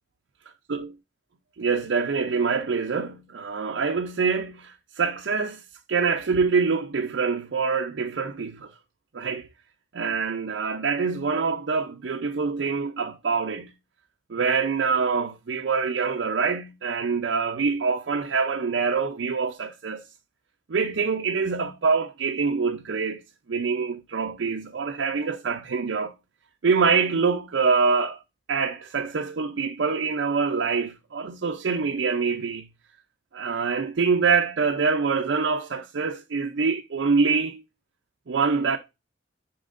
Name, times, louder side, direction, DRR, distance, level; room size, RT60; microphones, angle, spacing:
voice 1, 1.6-5.6 5.9-8.7 9.1-9.5 9.9-13.7 14.3-20.0 20.7-23.2 23.5-26.1 26.6-28.2 28.5-32.7 33.3-37.6 38.3-38.8, right 5 dB, 75° right, 0.5 m, -25 dB
10.0 x 4.3 x 2.5 m
head